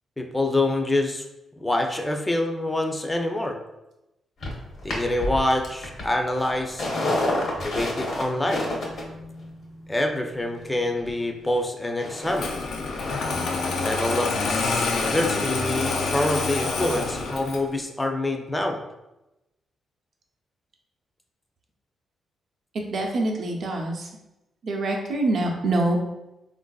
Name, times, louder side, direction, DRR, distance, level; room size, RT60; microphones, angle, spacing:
voice 1, 0.2-1.2 1.6-3.6 4.8-6.9 7.5-8.7 9.9-12.6 13.6-18.8, left 1 dB, 15° left, 4 dB, 0.4 m, -26 dB
sound 1, 4.4-11.6 12.0-12.4 12.7-17.2 17.4-17.5, left 1 dB, 65° left, 0.8 m, -32 dB
Engine starting, 12.3-17.7, left 4 dB, 80° left, 0.4 m, -27 dB
voice 2, 22.7-24.1 24.6-26.0, right 2 dB, 65° right, 0 dB, 0.6 m, -25 dB
3.3 x 2.5 x 2.3 m, 0.94 s
cardioid pair, 70°, 0 cm